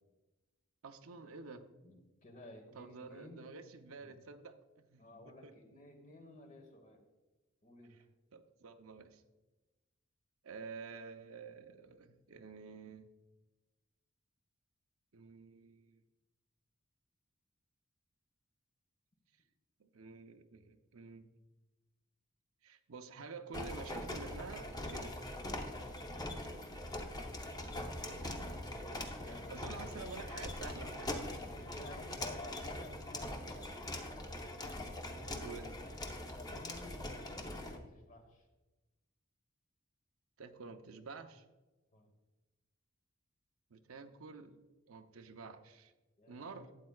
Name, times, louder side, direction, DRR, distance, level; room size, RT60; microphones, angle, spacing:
voice 1, 0.8-1.6 2.7-5.5 7.9-8.0 8.3-9.2 10.4-13.1 15.1-16.0 19.8-21.3 22.6-25.2 28.2-28.8 29.3-31.5 34.8-35.8 40.4-41.4 43.7-44.6 44.9-45.9 46.3-46.7, right 4 dB, 85° right, 7 dB, 0.7 m, -50 dB
voice 2, 1.8-3.5 3.8-4.1 5.0-7.1 7.6-8.0 26.2-26.8 29.1-30.0 31.4-33.7 36.4-38.4 41.9-42.1 46.2-46.7, left 1 dB, 35° left, 5 dB, 1.2 m, -54 dB
sound 1, 23.5-37.8, left 1 dB, 20° left, 0.7 m, -42 dB
12.0 x 8.5 x 2.3 m, 1.1 s
head